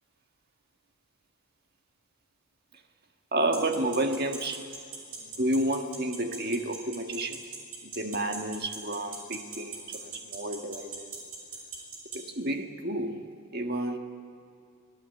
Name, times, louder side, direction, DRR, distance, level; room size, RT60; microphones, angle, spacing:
voice 1, 3.3-4.6 5.4-7.4 7.8-11.1 12.1-13.2 13.5-14.0, right 1 dB, 45° right, 5 dB, 1.5 m, -30 dB
sound 1, 3.5-12.2, right 5 dB, 80° right, 5.7 m, -39 dB
25.5 x 17.0 x 8.2 m, 2.4 s
head